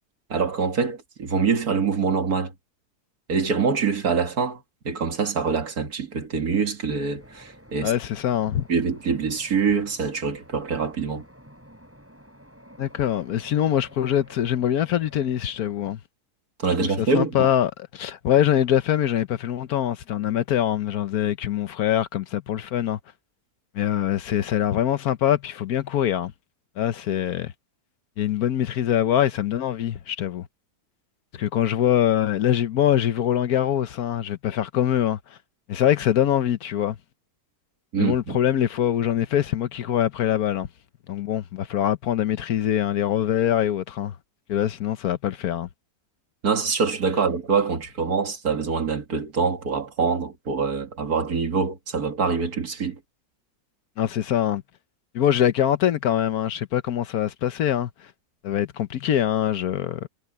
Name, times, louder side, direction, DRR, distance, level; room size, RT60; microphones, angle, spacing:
voice 1, 0.3-2.5 3.3-7.9 8.7-11.2 16.6-17.5 37.9-38.4 46.4-53.0, right 5 dB, 65° right, 2.5 m, -25 dB
sound 1, 7.2-15.9, equal, 10° right, 7.6 m, -51 dB
voice 2, 7.8-8.7 12.8-16.0 17.0-23.0 23.7-26.3 26.8-27.5 28.2-30.5 31.4-35.2 35.7-37.0 38.0-40.7 41.1-44.1 44.5-45.7 54.0-54.6 55.1-57.9 58.4-60.1, left 10 dB, 70° left, 1.3 m, -23 dB
omnidirectional pair, 1.7 m